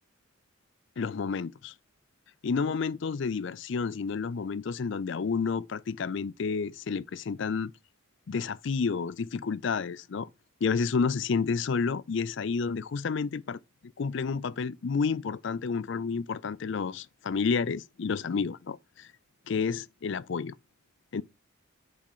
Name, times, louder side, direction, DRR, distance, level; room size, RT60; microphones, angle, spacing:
voice 1, 1.0-1.7 2.4-7.7 8.3-10.3 10.6-19.1 19.5-20.5 21.1-21.2, left 5 dB, 60° left, 0.4 m, -30 dB
7.3 x 4.4 x 5.4 m
head